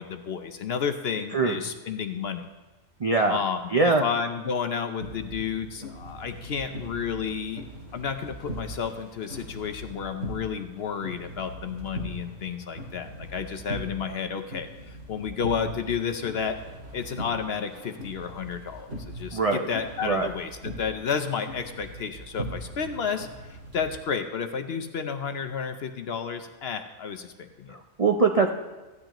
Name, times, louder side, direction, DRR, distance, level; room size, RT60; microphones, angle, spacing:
voice 1, 0.0-2.4 3.3-7.6 7.9-16.6 16.9-27.8, left 6 dB, 60° left, 8 dB, 0.8 m, -31 dB
voice 2, 3.0-3.4 3.7-4.0 19.3-19.7 20.0-20.3 27.7-28.5, right 4 dB, 50° right, 3 dB, 0.4 m, -22 dB
sound 1, 5.0-24.0, right 1 dB, 75° right, 2.3 m, -40 dB
14.5 x 10.5 x 3.0 m, 1.2 s
omnidirectional pair, 1.4 m